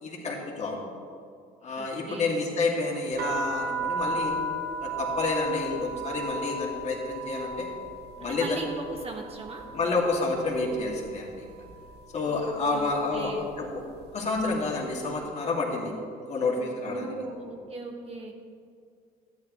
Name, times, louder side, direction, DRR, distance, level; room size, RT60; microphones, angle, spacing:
voice 1, 0.0-0.8 1.6-4.3 4.8-7.7 8.2-8.6 9.7-11.5 12.1-13.8 14.1-15.9 16.2-17.1, left 3 dB, 40° left, -2 dB, 2.4 m, -29 dB
voice 2, 1.7-2.3 8.2-9.7 12.2-12.5 12.7-13.5 16.8-18.3, right 3 dB, 35° right, 1 dB, 1.6 m, -39 dB
sound 1, 3.1-11.1 11.3-12.0 12.6-12.9 13.2-14.6, right 1 dB, 75° right, 1.7 m, -35 dB
14.0 x 10.5 x 3.2 m, 2.3 s
cardioid pair, 110°, 17 cm